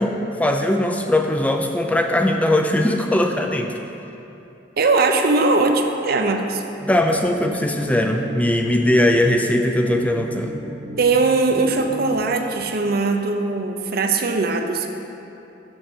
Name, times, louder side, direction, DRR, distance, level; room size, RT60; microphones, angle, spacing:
voice 1, 0.0-3.7 6.9-10.6, left 1 dB, 10° left, 3 dB, 0.4 m, -20 dB
voice 2, 4.8-6.6 11.0-14.9, right 3 dB, 55° right, 4 dB, 0.6 m, -20 dB
sound 1, 6.8-12.6, right 1 dB, 20° right, 0.7 m, -37 dB
6.7 x 6.4 x 6.1 m, 2.8 s
head